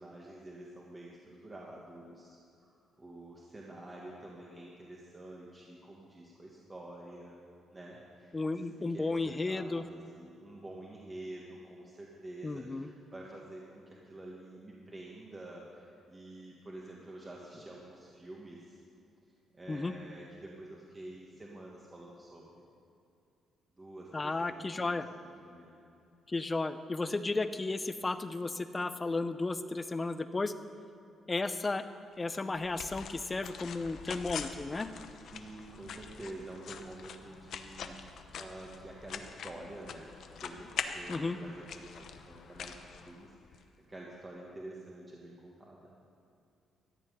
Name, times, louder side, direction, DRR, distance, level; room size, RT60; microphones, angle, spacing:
voice 1, 0.0-2.7 3.0-7.4 7.7-18.8 19.5-22.6 23.8-25.7 35.2-40.1 40.4-45.9, right 1 dB, 20° right, -3 dB, 1.8 m, -48 dB
voice 2, 8.3-9.8 12.4-12.9 19.7-19.9 24.1-25.1 26.3-30.5 31.3-31.8 32.2-34.9 41.1-41.4, left 3 dB, 25° left, 11 dB, 0.7 m, -33 dB
sound 1, 32.3-43.6, left 6 dB, 65° left, 0.9 m, -44 dB
14.0 x 6.1 x 9.4 m, 2.6 s
cardioid pair, 90°, 0 cm